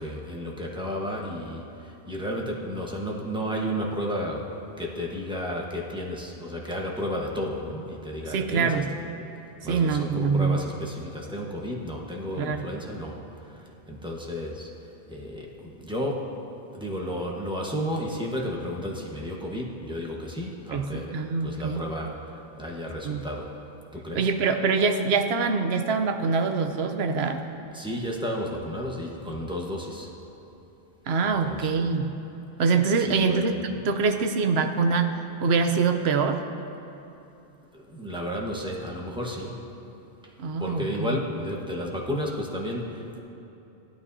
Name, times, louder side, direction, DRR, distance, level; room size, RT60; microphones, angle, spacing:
voice 1, 0.0-8.8 9.6-16.4 16.7-23.6 23.9-24.3 27.7-30.1 31.4-31.9 33.0-33.6 37.7-39.6 40.2-43.2, equal, 5° right, -1 dB, 1.1 m, -33 dB
voice 2, 8.3-8.9 9.6-10.6 12.4-12.7 20.7-21.8 23.0-23.3 24.1-27.4 31.1-32.1 32.6-35.2 35.4-36.4 40.4-41.2, right 4 dB, 80° right, 6 dB, 1.0 m, -24 dB
16.0 x 11.5 x 2.7 m, 2.9 s
omnidirectional pair, 1.1 m